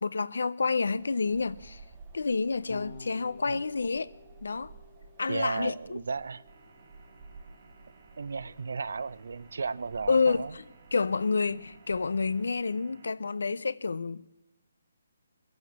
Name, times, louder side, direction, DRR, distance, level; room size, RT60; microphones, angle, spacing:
voice 1, 0.0-1.8 2.1-4.1 4.4-4.7 5.2-6.0 10.1-10.6 10.9-14.5, left 4 dB, 85° left, 0.5 m, -29 dB
Wind, 1.0-12.6, right 4 dB, 15° right, 0.9 m, -54 dB
Electric guitar / Bass guitar, 2.7-9.1, left 4 dB, 60° left, 1.0 m, -52 dB
voice 2, 5.3-6.4 8.2-10.6, right 4 dB, 65° right, 0.5 m, -34 dB
sound 1, 6.5-13.1, right 3 dB, 45° right, 1.4 m, -58 dB
21.0 x 8.0 x 7.3 m
hypercardioid pair, 175°, 0 cm